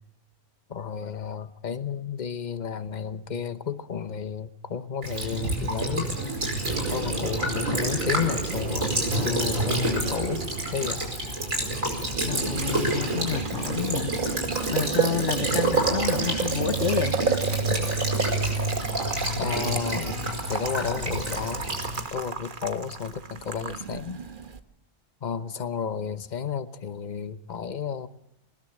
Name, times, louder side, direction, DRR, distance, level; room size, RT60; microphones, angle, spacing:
voice 1, 0.7-6.2 6.9-11.1 19.4-21.7 22.1-24.2 25.2-28.1, left 7 dB, 35° left, 11 dB, 1.0 m, -32 dB
Child speech kid speaking / Bird vocalization bird call bird song / Stream, 5.0-22.0, right 1 dB, 85° right, 5.4 m, -29 dB
Boiling, 6.7-24.6, right 5 dB, 40° right, 1.2 m, -32 dB
voice 2, 12.3-17.2, left 9 dB, 65° left, 12 dB, 1.4 m, -30 dB
20.5 x 20.0 x 7.3 m, 0.86 s
omnidirectional pair, 1.4 m